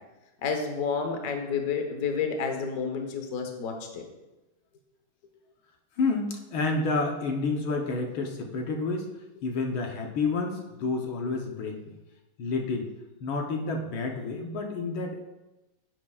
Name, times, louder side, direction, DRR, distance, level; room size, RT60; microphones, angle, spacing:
voice 1, 0.4-4.0, left 5 dB, 50° left, 4 dB, 1.3 m, -30 dB
voice 2, 6.0-9.1 9.4-11.8 12.4-12.9 13.2-15.2, left 3 dB, 70° left, 2 dB, 1.7 m, -29 dB
10.0 x 9.7 x 2.4 m, 1.0 s
omnidirectional pair, 2.4 m